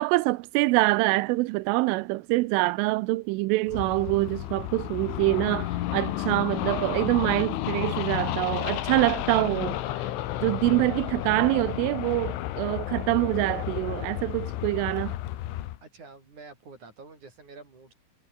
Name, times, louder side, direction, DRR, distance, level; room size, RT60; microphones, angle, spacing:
voice 1, 0.0-10.1 10.4-15.2, right 21 dB, 90° right, 3.3 m, -25 dB
sound 1, 3.7-15.8, left 14 dB, 80° left, 4.0 m, -32 dB
voice 2, 15.8-18.0, right 4 dB, 40° right, 8.7 m, -48 dB
omnidirectional pair, 5.5 m